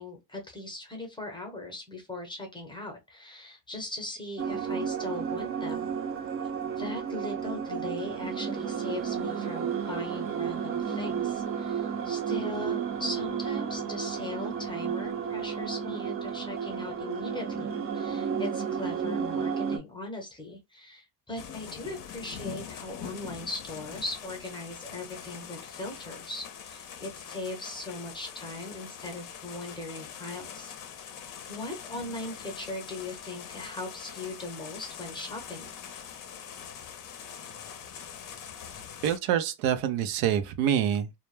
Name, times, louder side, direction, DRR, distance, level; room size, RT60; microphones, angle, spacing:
voice 1, 0.0-5.9 6.8-30.7 31.5-35.7, left 2 dB, 10° left, 0.7 m, -39 dB
sound 1, 4.4-19.8, right 7 dB, 35° right, 0.4 m, -32 dB
sound 2, 21.4-39.2, left 8 dB, 45° left, 0.5 m, -43 dB
voice 2, 39.0-41.2, right 10 dB, 90° right, 0.6 m, -26 dB
2.1 x 2.1 x 3.1 m
cardioid pair, 125°, 44 cm